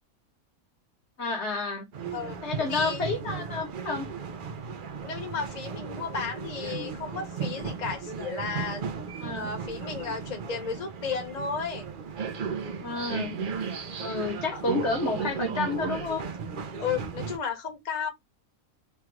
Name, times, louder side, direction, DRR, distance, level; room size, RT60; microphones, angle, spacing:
voice 1, 1.2-1.9 2.4-4.1 9.2-9.5 12.8-13.3 14.0-16.2, left 3 dB, 55° left, 1.2 m, -30 dB
sound 1, 1.9-17.4, right 5 dB, 50° right, 0.6 m, -35 dB
voice 2, 2.7-3.0 5.0-8.8 9.3-11.9 13.7-14.0 14.5-14.6 16.8-18.1, left 6 dB, 35° left, 0.9 m, -33 dB
3.4 x 2.4 x 4.4 m
omnidirectional pair, 1.5 m